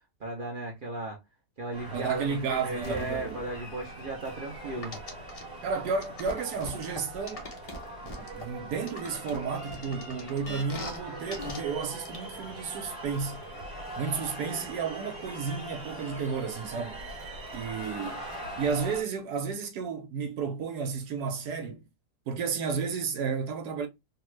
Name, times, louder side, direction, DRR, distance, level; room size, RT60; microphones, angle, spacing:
voice 1, 0.2-1.2 1.6-5.0, right 2 dB, 60° right, 0.5 m, -36 dB
sound 1, 1.7-19.0, right 1 dB, 30° right, 1.4 m, -42 dB
voice 2, 1.9-3.4 5.6-7.5 8.0-13.4 14.0-17.0 17.5-18.2 18.6-21.8 22.3-23.9, right 5 dB, 85° right, 1.3 m, -32 dB
sound 2, 2.8-5.4 5.8-5.9, left 1 dB, 75° left, 1.1 m, -47 dB
sound 3, 4.8-5.4 6.0-8.4 8.9-11.0 11.3-11.6 12.0-12.2, left 2 dB, 55° left, 0.4 m, -40 dB
3.2 x 2.2 x 3.0 m
omnidirectional pair, 1.7 m